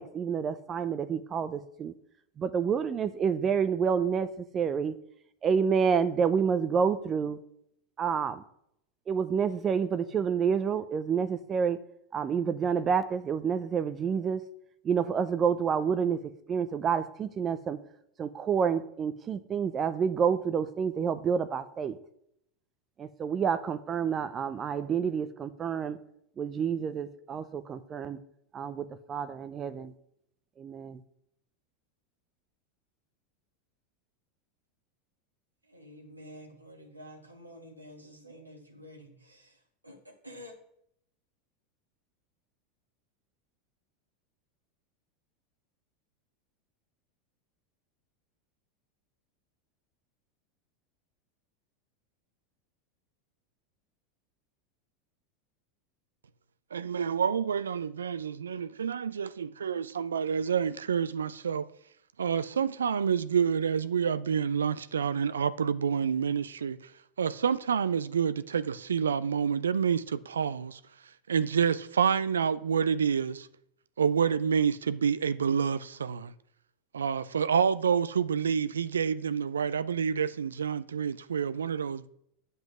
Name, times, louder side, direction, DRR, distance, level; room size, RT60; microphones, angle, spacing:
voice 1, 0.0-1.9 2.4-4.9 5.4-7.4 8.0-8.4 9.1-11.8 12.1-14.4 14.8-16.2 16.5-17.8 18.2-22.0 23.0-26.0 26.4-28.2 28.5-29.9 30.6-31.0, right 6 dB, 30° right, 0.6 m, -28 dB
voice 2, 35.7-39.5 39.8-40.5, equal, 90° right, 1.5 m, -49 dB
voice 3, 56.7-61.7 62.2-66.8 67.2-70.8 71.3-73.5 74.0-76.3 76.9-82.1, right 7 dB, 75° right, 0.4 m, -28 dB
9.0 x 5.5 x 6.1 m
figure-of-eight pair, 85°, 0 cm